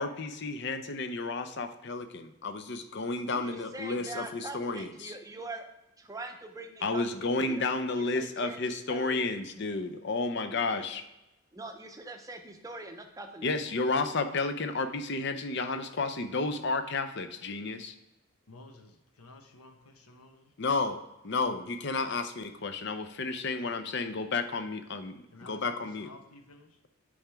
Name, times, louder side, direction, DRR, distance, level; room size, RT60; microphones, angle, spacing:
voice 1, 0.0-5.1 6.8-11.0 13.4-17.9 20.6-26.1, left 3 dB, 50° left, 8 dB, 0.6 m, -32 dB
voice 2, 3.3-5.7 6.0-7.7 8.0-8.6 8.9-9.2 10.5-10.8 11.5-13.5, right 2 dB, 15° right, 5 dB, 0.6 m, -43 dB
voice 3, 18.5-20.5 22.6-23.4 25.3-26.8, left 2 dB, 85° left, 5 dB, 1.0 m, -53 dB
8.5 x 5.0 x 3.5 m, 0.94 s
head